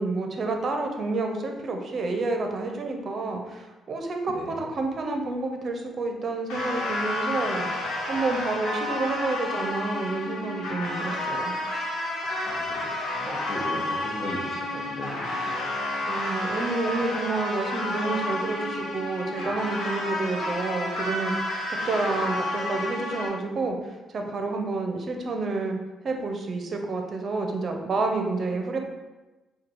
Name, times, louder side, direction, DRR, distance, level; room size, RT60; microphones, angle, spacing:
voice 1, 0.0-11.5 16.1-25.8 26.0-28.8, right 3 dB, 50° right, 3 dB, 0.7 m, -29 dB
sound 1, 6.5-23.3, left 1 dB, 85° left, 1.0 m, -30 dB
voice 2, 12.4-12.9 13.2-15.5, equal, 25° left, -2 dB, 1.2 m, -37 dB
4.6 x 2.3 x 4.5 m, 1.1 s
cardioid pair, 90°, 0 cm